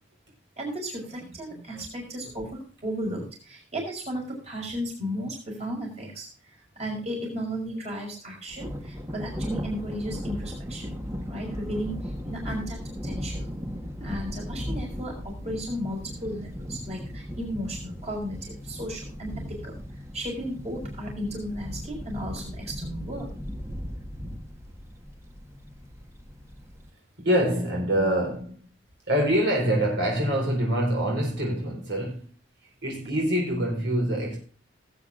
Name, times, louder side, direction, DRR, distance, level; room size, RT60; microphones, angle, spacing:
voice 1, 0.6-6.3 6.8-11.0 11.3-13.5 14.0-19.8 20.1-23.3, equal, 35° right, 5.8 m, -34 dB
Thunder, 8.5-26.9, equal, 15° right, 1.3 m, -37 dB
voice 2, 27.2-28.6 29.1-32.3 32.8-34.4, right 1 dB, 70° right, 4.4 m, -25 dB
19.0 x 8.9 x 2.5 m
head